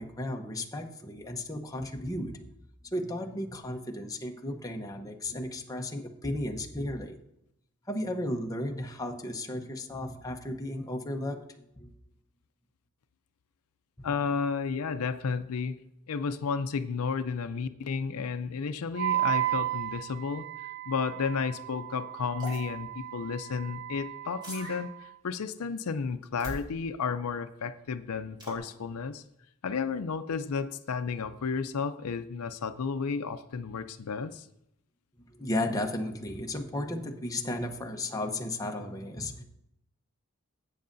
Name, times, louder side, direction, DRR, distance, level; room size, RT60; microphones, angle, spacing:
voice 1, 0.0-2.4 2.8-7.2 7.9-11.9 14.0-14.1 31.3-31.4 35.3-39.4, left 1 dB, 15° left, 3 dB, 0.8 m, -34 dB
voice 2, 14.0-15.8 16.1-20.5 20.9-29.2 29.6-34.5, left 5 dB, 85° left, 11 dB, 0.5 m, -32 dB
Wind instrument woodwind instrument, 18.9-25.1, right 14 dB, 45° right, 0.3 m, -34 dB
sound 1, 22.4-22.6 24.4-24.8 26.4-26.6 28.4-28.6, equal, 20° right, 3.2 m, -40 dB
12.5 x 8.4 x 2.6 m, 0.79 s
head